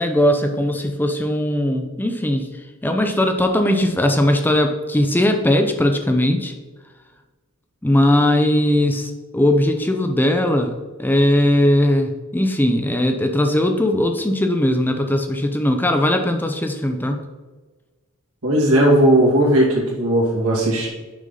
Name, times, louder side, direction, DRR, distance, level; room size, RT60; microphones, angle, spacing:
voice 1, 0.0-2.5 2.8-6.5 7.8-10.7 11.0-17.2, left 1 dB, 10° left, 5 dB, 0.4 m, -19 dB
voice 2, 18.4-20.9, right 1 dB, 75° right, -3 dB, 2.2 m, -16 dB
6.3 x 5.5 x 3.8 m, 1.3 s
head